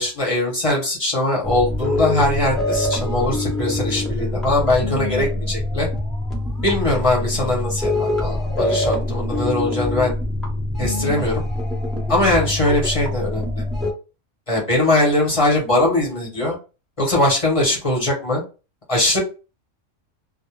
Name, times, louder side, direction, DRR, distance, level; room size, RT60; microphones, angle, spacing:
voice 1, 0.0-5.9 6.6-10.1 10.8-11.4 12.1-13.6 14.5-16.6 17.0-18.4 18.9-19.2, left 1 dB, 30° left, -3 dB, 0.9 m, -21 dB
sound 1, 1.4-13.9, left 1 dB, ahead, 0.6 m, -24 dB
2.2 x 2.1 x 3.1 m, 0.32 s
omnidirectional pair, 1.3 m